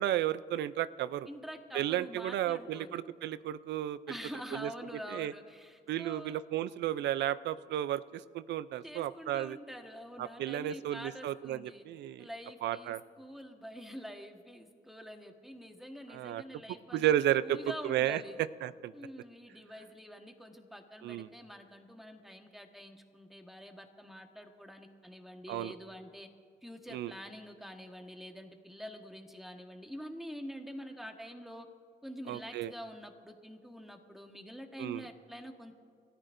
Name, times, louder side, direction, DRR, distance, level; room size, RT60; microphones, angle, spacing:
voice 1, 0.0-1.3 1.7-4.0 4.5-4.7 5.1-5.3 5.9-9.6 10.2-12.2 12.6-13.0 16.1-16.4 16.9-17.6 17.8-18.2 18.6-18.9 21.0-21.3 25.5-25.7 26.9-27.1 32.3-32.7 34.8-35.0, right 12 dB, 85° right, 16 dB, 0.5 m, -33 dB
voice 2, 1.3-3.0 4.1-6.4 8.8-11.8 12.2-17.1 17.4-18.4 18.9-26.3 26.6-31.7 32.0-35.7, equal, ahead, 4 dB, 1.4 m, -46 dB
29.0 x 13.5 x 2.6 m, 2.1 s
cardioid pair, 95°, 17 cm